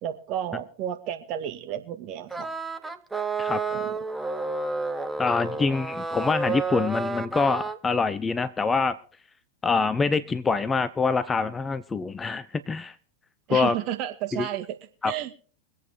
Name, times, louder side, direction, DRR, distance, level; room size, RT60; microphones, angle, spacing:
voice 1, 0.0-2.5 3.7-3.9 13.5-14.7 15.0-15.3, right 11 dB, 40° right, 8 dB, 1.9 m, -32 dB
sound 1, 2.3-7.8, right 4 dB, 10° right, 0.9 m, -30 dB
voice 2, 5.2-9.0 9.6-12.9 13.5-13.8 14.3-14.5 15.0-15.1, left 4 dB, 15° left, 15 dB, 0.7 m, -25 dB
23.0 x 8.4 x 4.6 m, 0.41 s
figure-of-eight pair, 90°, 0 cm